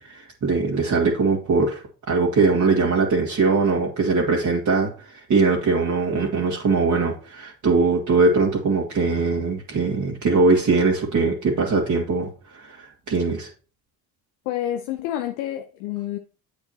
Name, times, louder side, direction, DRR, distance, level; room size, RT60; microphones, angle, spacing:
voice 1, 0.0-13.5, right 4 dB, 40° right, 2.2 m, -21 dB
voice 2, 14.5-16.2, left 12 dB, 75° left, 0.8 m, -28 dB
8.4 x 7.9 x 2.9 m
hypercardioid pair, 65°, 44 cm